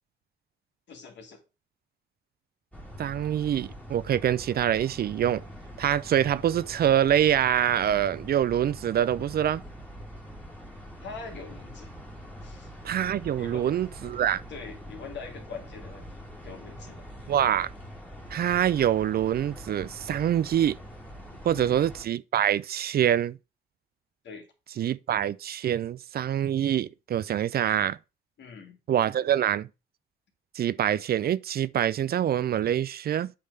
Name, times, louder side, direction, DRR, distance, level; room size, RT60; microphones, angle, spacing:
voice 1, 0.9-1.4 11.0-11.9 12.4-12.7 13.4-13.7 14.5-16.1 16.4-17.0 21.4-21.8 24.2-24.5 28.4-28.8, left 5 dB, 65° left, 2.6 m, -43 dB
sound 1, 2.7-22.0, equal, 5° left, 2.3 m, -44 dB
voice 2, 3.0-5.4 5.8-9.6 12.8-14.4 17.3-17.7 18.3-20.8 21.4-23.4 24.8-28.0 28.9-29.7 30.5-33.3, right 10 dB, 50° right, 0.4 m, -25 dB
8.4 x 3.6 x 5.4 m
cardioid pair, 90°, 20 cm